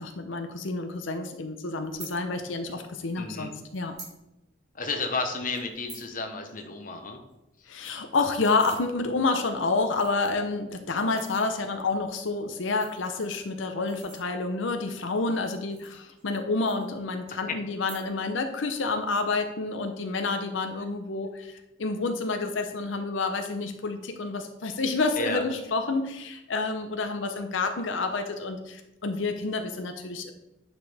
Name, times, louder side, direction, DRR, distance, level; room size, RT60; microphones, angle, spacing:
voice 1, 0.0-3.9 7.7-30.3, left 3 dB, 85° left, 6 dB, 0.7 m, -29 dB
sound 1, 1.8-2.1 3.1-3.2 3.7-4.2 4.5-4.6 4.9-5.1 5.5-6.1 6.5-6.6 6.9-7.0 7.3-7.4 7.6-8.8 9.5-9.6 9.9-10.5 11.0-11.5 12.5-14.6 15.3-16.4 16.7-17.3 17.7-18.3 18.6-19.0, right 3 dB, 35° right, 3.0 m, -47 dB
voice 2, 3.2-3.5 4.7-7.2 25.2-25.4, left 3 dB, 45° left, 4 dB, 1.0 m, -32 dB
9.6 x 6.0 x 3.5 m, 0.92 s
head